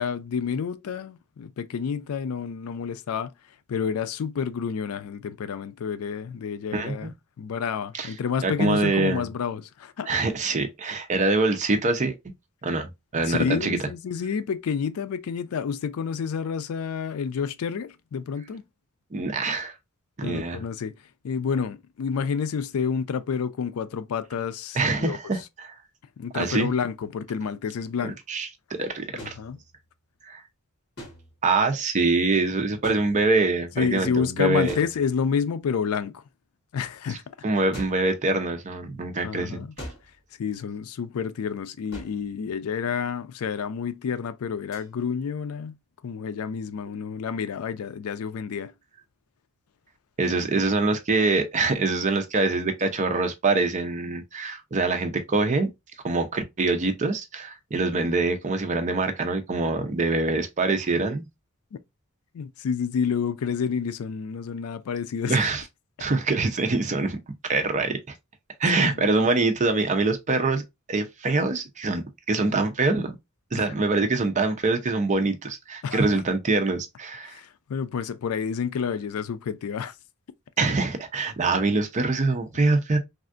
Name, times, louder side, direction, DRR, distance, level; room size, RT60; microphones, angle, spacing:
voice 1, 0.0-3.3 3.7-10.1 13.2-18.6 20.2-20.9 21.2-25.3 26.2-28.2 29.1-29.6 33.8-36.2 36.7-37.3 39.2-39.7 40.4-45.8 46.0-48.7 61.7-61.8 62.3-65.4 68.8-69.1 73.6-73.7 75.8-76.2 77.2-79.9, left 6 dB, 80° left, 0.4 m, -29 dB
voice 2, 6.7-7.1 7.9-8.1 8.4-9.3 10.1-12.2 12.6-13.8 19.1-19.7 20.2-20.6 24.8-25.7 26.3-26.7 28.3-29.4 30.3-30.4 31.4-34.8 37.1-37.2 37.4-39.6 50.2-55.7 56.0-61.3 65.2-65.6 66.0-68.0 68.6-70.6 70.9-73.2 73.5-77.4 80.6-83.0, right 3 dB, 35° right, 0.6 m, -24 dB
sound 1, 26.4-26.7 29.2-30.0 31.0-31.6 32.8-33.6 34.7-35.5 37.7-38.1 39.8-40.3 41.9-42.3 44.7-44.9, equal, 55° left, 1.7 m, -42 dB
3.3 x 2.4 x 2.5 m
head